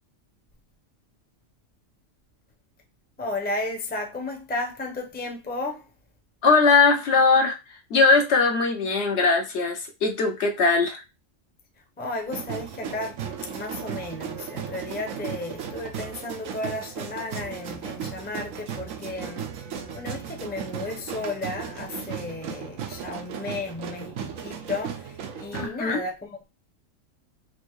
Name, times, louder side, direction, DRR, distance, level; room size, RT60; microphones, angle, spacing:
voice 1, 3.2-5.9 12.0-26.4, left 2 dB, 10° left, 0.6 m, -34 dB
voice 2, 6.4-7.6 7.9-11.0 25.5-26.0, left 4 dB, 65° left, 0.9 m, -20 dB
sound 1, 12.3-25.7, right 7 dB, 85° right, 1.1 m, -36 dB
4.4 x 2.6 x 3.0 m
omnidirectional pair, 1.3 m